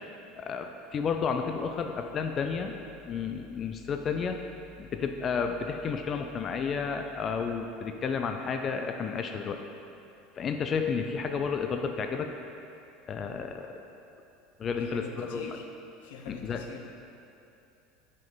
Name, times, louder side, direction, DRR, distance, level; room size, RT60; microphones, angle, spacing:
voice 1, 0.3-2.8 3.1-4.4 4.8-9.6 10.4-12.3 13.1-13.7 14.6-15.6 16.3-16.6, left 6 dB, 30° left, 5 dB, 0.4 m, -31 dB
voice 2, 14.8-15.7 16.0-16.8, left 5 dB, 85° left, 3 dB, 0.8 m, -45 dB
10.5 x 5.3 x 4.0 m, 2.7 s
supercardioid pair, 140°, 0 cm